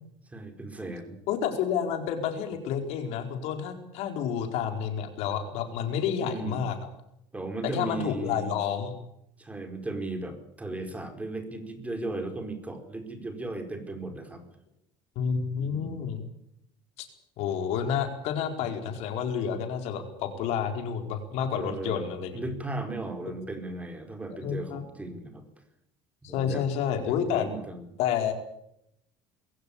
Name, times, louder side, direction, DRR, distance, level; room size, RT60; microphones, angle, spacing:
voice 1, 0.3-1.2 6.2-6.6 7.3-8.6 9.4-14.4 15.6-16.0 21.5-25.4 26.2-26.6 27.3-27.8, right 2 dB, 10° right, 6 dB, 4.8 m, -36 dB
voice 2, 1.3-6.8 7.6-8.9 15.2-16.2 17.0-17.1 17.4-22.4 24.4-24.8 26.2-27.5 28.0-28.3, left 8 dB, 70° left, 6 dB, 4.5 m, -29 dB
22.0 x 16.5 x 8.7 m, 0.78 s
cardioid pair, 125°, 11 cm